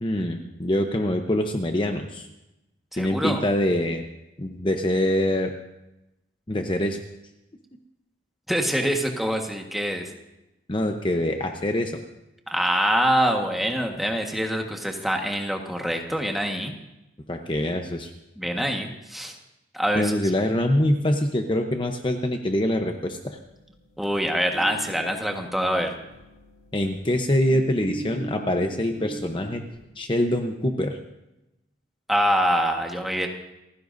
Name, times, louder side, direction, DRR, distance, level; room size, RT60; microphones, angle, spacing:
voice 1, 0.0-2.3 3.0-4.0 4.4-5.5 6.5-7.0 10.7-12.0 17.3-18.1 19.9-23.4 26.7-29.6 30.0-31.0, left 1 dB, 30° left, 4 dB, 0.9 m, -24 dB
voice 2, 2.9-3.4 8.5-10.1 12.5-16.7 18.4-19.3 19.7-20.1 24.0-25.9 32.1-33.3, equal, ahead, 2 dB, 1.5 m, -25 dB
sound 1, 23.1-29.8, right 1 dB, 45° left, 5.3 m, -41 dB
29.0 x 15.5 x 2.7 m, 0.94 s
head